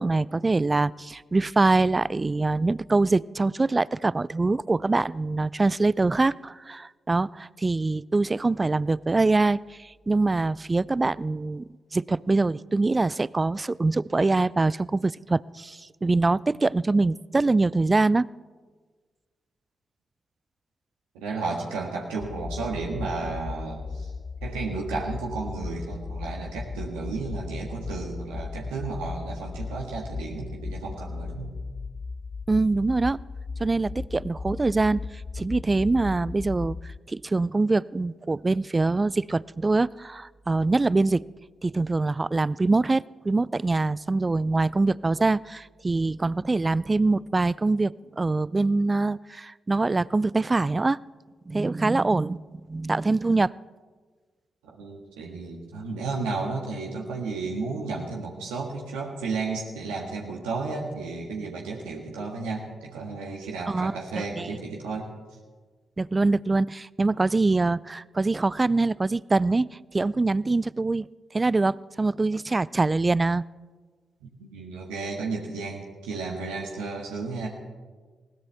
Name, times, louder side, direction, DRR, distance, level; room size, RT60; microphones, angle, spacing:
voice 1, 0.0-18.3 32.5-33.2 33.6-35.1 35.4-36.8 37.1-41.2 41.6-51.0 51.5-53.5 63.7-64.5 66.0-71.0 71.3-73.4, right 3 dB, 30° right, 22 dB, 0.3 m, -24 dB
voice 2, 21.1-24.1 24.4-31.5 33.9-34.0 54.6-65.1 74.2-77.5, right 3 dB, 90° right, -1 dB, 1.6 m, -33 dB
sound 1, 22.2-37.0, left 4 dB, 45° left, 0.4 m, -36 dB
20.5 x 16.5 x 3.4 m, 1.4 s
hypercardioid pair, 40°, 0 cm